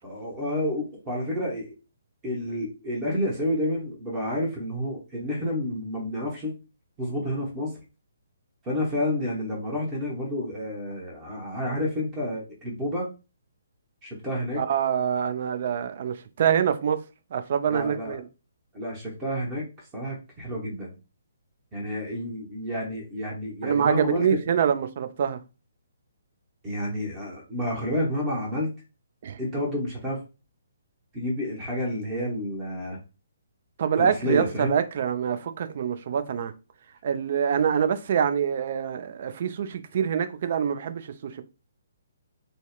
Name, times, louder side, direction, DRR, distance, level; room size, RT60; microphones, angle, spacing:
voice 1, 0.0-1.7 2.2-6.5 7.0-7.7 8.6-13.1 14.0-14.6 17.7-18.2 18.7-21.0 21.7-24.3 26.6-28.7 29.4-30.2 31.1-33.0 34.0-34.8, left 1 dB, 20° right, 0.8 m, -30 dB
voice 2, 14.6-17.0 17.3-18.2 23.6-25.4 29.2-29.4 33.8-36.5 37.0-41.4, right 8 dB, 45° right, 0.3 m, -25 dB
2.7 x 2.0 x 2.2 m
figure-of-eight pair, 135°, 0 cm